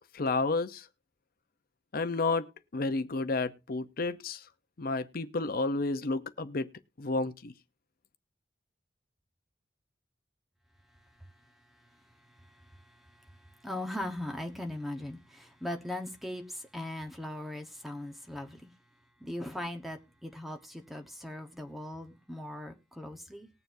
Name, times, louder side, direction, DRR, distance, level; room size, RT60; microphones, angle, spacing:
voice 1, 0.1-0.8 1.9-2.5 2.7-4.4 4.8-6.7 7.0-7.5, left 3 dB, 55° left, 0.7 m, -31 dB
voice 2, 11.0-18.8 19.2-23.5, left 1 dB, ahead, 1.1 m, -40 dB
20.0 x 6.9 x 2.6 m
head